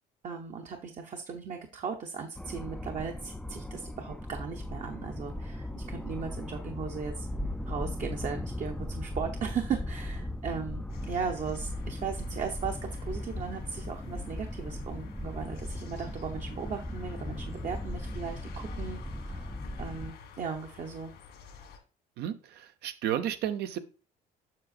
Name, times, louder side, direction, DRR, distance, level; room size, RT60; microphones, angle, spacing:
voice 1, 0.2-7.3 7.7-19.5 19.8-21.1, right 6 dB, 45° right, 3 dB, 0.8 m, -37 dB
sound 1, 2.4-20.1, left 1 dB, 5° left, 0.3 m, -38 dB
sound 2, 10.9-21.8, left 6 dB, 80° left, 1.9 m, -51 dB
voice 2, 22.2-23.8, right 10 dB, 75° right, 10 dB, 0.8 m, -32 dB
7.6 x 6.0 x 2.4 m, 0.34 s
cardioid pair, 110°, 17 cm